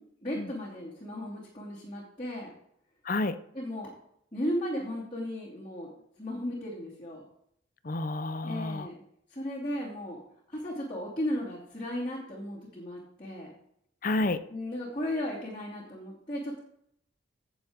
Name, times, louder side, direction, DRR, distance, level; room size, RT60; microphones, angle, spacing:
voice 1, 0.2-2.5 3.5-3.9 4.3-5.9 6.2-7.2 8.4-9.0 9.3-10.2 10.5-13.5 14.5-16.6, left 1 dB, 25° left, -8 dB, 2.7 m, -35 dB
voice 2, 3.1-3.4 7.8-8.9 14.0-14.4, left 2 dB, 40° left, 12 dB, 0.6 m, -30 dB
16.5 x 7.2 x 3.6 m, 0.72 s
head